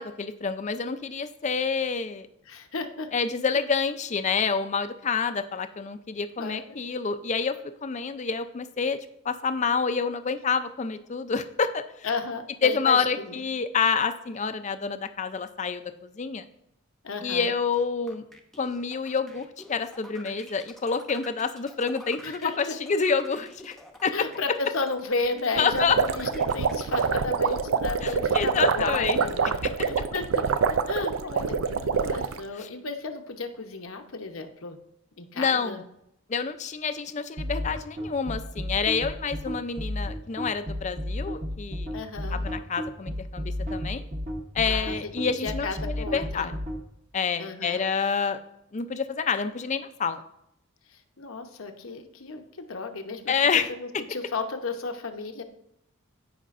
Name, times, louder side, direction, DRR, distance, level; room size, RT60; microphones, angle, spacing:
voice 1, 0.0-2.3 3.1-7.5 7.8-9.0 9.2-11.8 12.6-16.5 17.2-18.2 18.6-23.8 24.0-24.1 25.6-26.0 28.0-29.2 29.6-29.7 32.6-32.7 35.3-35.8 36.3-41.9 42.3-44.1 44.5-46.5 47.1-48.4 48.7-50.2 53.3-53.7, left 5 dB, 35° left, 10 dB, 0.4 m, -28 dB
voice 2, 2.5-3.1 6.4-6.8 12.0-13.4 17.0-17.5 22.2-22.8 24.1-30.4 30.9-34.8 35.2-35.8 41.9-42.5 44.7-46.5 47.4-47.9 51.2-53.3 53.8-55.4, left 3 dB, 75° left, 5 dB, 0.9 m, -33 dB
sound 1, 17.7-26.8, left 1 dB, ahead, 0.7 m, -47 dB
sound 2, 25.6-32.4, right 5 dB, 70° right, 0.4 m, -26 dB
sound 3, 37.4-46.8, left 1 dB, 35° right, 0.9 m, -32 dB
14.5 x 5.0 x 2.5 m, 0.78 s
head